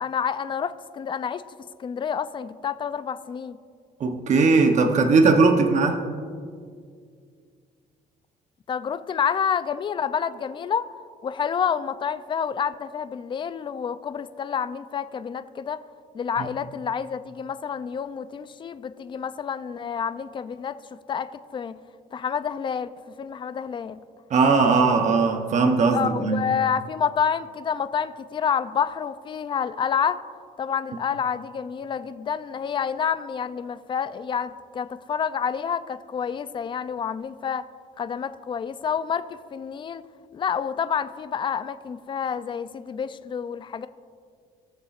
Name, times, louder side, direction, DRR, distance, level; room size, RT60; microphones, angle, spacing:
voice 1, 0.0-1.4 1.8-3.6 8.7-10.8 11.2-15.8 16.1-20.7 21.1-21.7 22.1-22.9 23.2-24.0 25.9-30.2 30.6-37.6 38.0-40.0 40.3-43.9, left 7 dB, 30° left, 12 dB, 0.4 m, -28 dB
voice 2, 4.0-6.0 24.3-26.5, right 4 dB, 45° right, 5 dB, 0.9 m, -19 dB
17.5 x 6.9 x 2.5 m, 2.1 s
cardioid pair, 110°, 17 cm